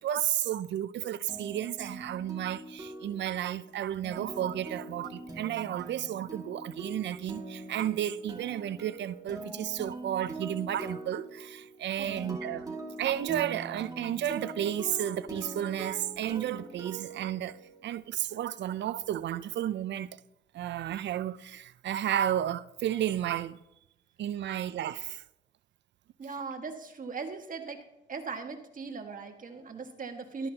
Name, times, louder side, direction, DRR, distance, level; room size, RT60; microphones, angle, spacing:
voice 1, 0.0-17.6 17.8-20.1 20.5-23.6 24.2-25.2, right 11 dB, 65° right, 0.6 m, -32 dB
sound 1, 1.3-18.0, right 2 dB, 20° right, 2.3 m, -43 dB
voice 2, 26.2-27.8 28.1-30.5, right 4 dB, 40° right, 1.8 m, -39 dB
13.0 x 13.0 x 2.9 m
cardioid pair, 90°, 20 cm